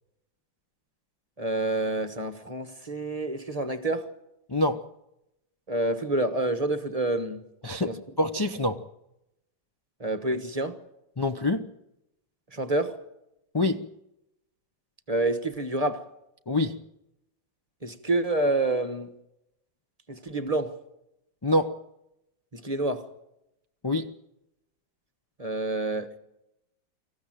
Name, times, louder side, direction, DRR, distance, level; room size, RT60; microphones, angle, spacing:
voice 1, 1.4-4.1 5.7-7.4 7.8-8.0 10.0-10.8 12.5-12.9 15.1-16.0 17.8-19.1 20.1-20.7 22.5-23.1 25.4-26.2, right 2 dB, 25° right, 1.2 m, -28 dB
voice 2, 4.5-4.8 7.6-8.8 11.2-11.7 13.5-13.9 16.5-16.8 21.4-21.8 23.8-24.1, left 1 dB, 30° left, 0.4 m, -26 dB
25.0 x 15.0 x 9.0 m
omnidirectional pair, 2.0 m